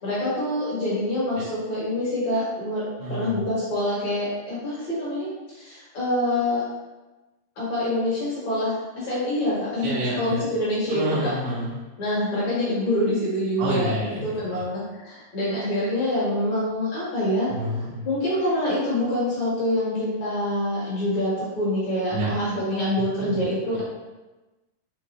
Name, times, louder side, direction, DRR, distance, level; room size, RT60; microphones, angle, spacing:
voice 1, 0.0-2.8 3.1-6.6 7.6-11.3 12.0-14.0 14.2-17.5 18.0-23.8, left 1 dB, 55° left, -9 dB, 2.3 m, -26 dB
voice 2, 3.0-3.4 9.8-10.4 10.9-11.7 13.6-14.6 17.5-18.1 22.1-22.3 23.2-23.3, right 1 dB, 80° right, -7 dB, 2.6 m, -29 dB
6.2 x 2.6 x 2.9 m, 1.1 s
omnidirectional pair, 4.5 m